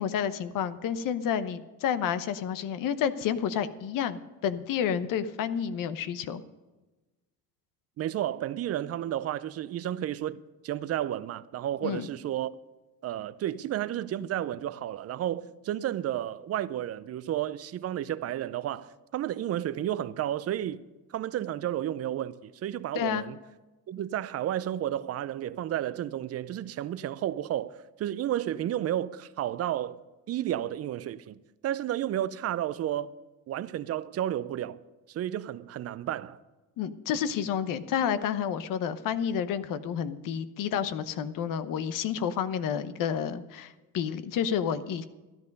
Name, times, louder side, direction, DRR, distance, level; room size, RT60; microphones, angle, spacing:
voice 1, 0.0-6.4 11.8-12.1 22.9-23.2 36.8-45.0, left 8 dB, 65° left, 0.9 m, -30 dB
voice 2, 8.0-12.5 13.0-20.8 21.1-23.4 23.9-30.0 30.3-31.4 31.6-33.1 33.5-34.8 35.1-36.4, right 12 dB, 45° right, 0.6 m, -32 dB
13.5 x 11.0 x 5.3 m
cardioid pair, 110°, 36 cm